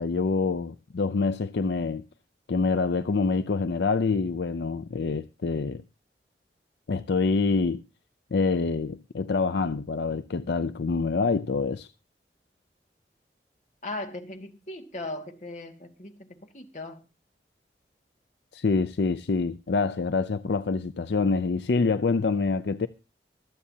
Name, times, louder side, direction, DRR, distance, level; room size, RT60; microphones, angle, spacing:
voice 1, 0.0-2.0 2.5-5.8 6.9-7.8 8.3-11.9 18.5-22.9, left 4 dB, 75° left, 0.5 m, -26 dB
voice 2, 13.8-17.0, left 2 dB, 40° left, 2.0 m, -38 dB
24.5 x 8.4 x 2.8 m
head